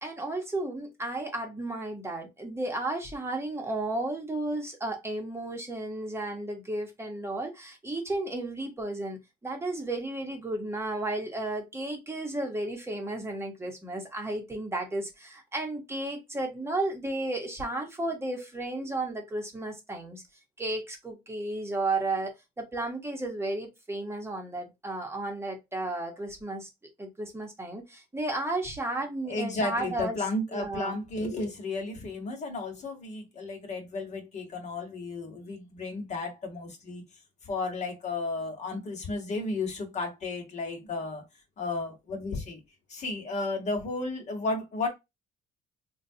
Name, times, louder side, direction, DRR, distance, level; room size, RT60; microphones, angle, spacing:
voice 1, 0.0-20.2 20.6-26.7 27.0-30.2 30.5-31.0, right 2 dB, 15° right, 1.0 m, -33 dB
voice 2, 29.3-37.0 37.4-41.2 41.6-42.6 42.9-44.9, left 2 dB, 45° left, 1.2 m, -33 dB
3.7 x 2.3 x 2.7 m
cardioid pair, 110°, 17 cm